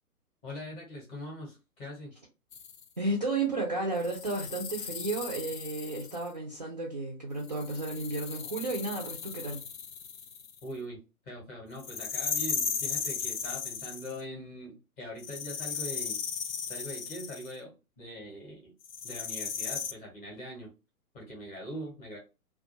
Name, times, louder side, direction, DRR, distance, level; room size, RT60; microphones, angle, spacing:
voice 1, 0.4-2.2 10.6-16.2 16.7-18.7 19.0-20.7 21.1-22.2, equal, 15° left, -2 dB, 0.7 m, -42 dB
sound 1, 2.5-2.8 4.0-6.3 7.4-10.6 11.8-14.2 15.2-17.5 18.8-19.9, left 6 dB, 65° left, 0.5 m, -36 dB
voice 2, 3.0-9.6, right 2 dB, 30° right, -1 dB, 0.4 m, -33 dB
2.3 x 2.3 x 2.7 m, 0.29 s
figure-of-eight pair, 120°, 44 cm